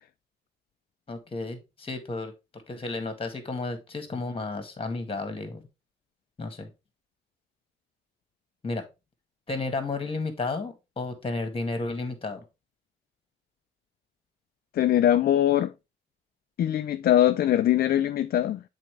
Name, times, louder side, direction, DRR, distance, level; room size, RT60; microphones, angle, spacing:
voice 1, 1.1-2.3 2.7-5.6 6.4-6.7 8.6-8.8 9.5-12.4, left 3 dB, 30° left, 1.8 m, -32 dB
voice 2, 14.7-15.7 16.6-18.6, left 11 dB, 50° left, 0.4 m, -22 dB
7.6 x 4.2 x 3.3 m
cardioid pair, 90°, 20 cm